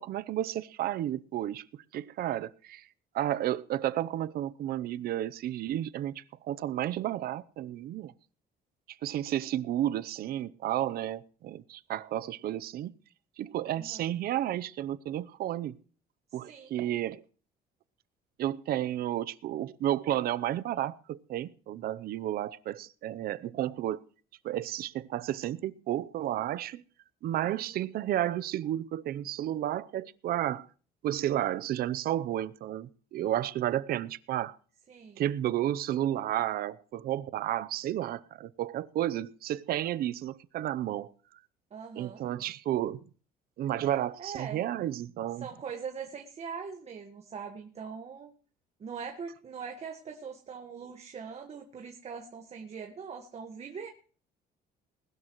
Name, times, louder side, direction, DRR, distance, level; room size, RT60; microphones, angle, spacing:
voice 1, 0.0-2.8 3.1-8.1 9.0-12.9 13.4-15.8 16.3-17.2 18.4-24.0 24.4-26.8 27.2-30.7 31.0-34.6 35.2-41.1 41.9-43.0 43.6-45.5, right 12 dB, 65° right, 16 dB, 0.7 m, -32 dB
voice 2, 13.8-14.1 16.4-16.7 27.4-27.8 34.9-35.2 41.7-42.2 44.2-44.6 45.4-48.3 48.8-53.9, right 6 dB, 40° right, 4 dB, 1.5 m, -42 dB
20.0 x 12.0 x 3.1 m, 0.42 s
cardioid pair, 110°, 17 cm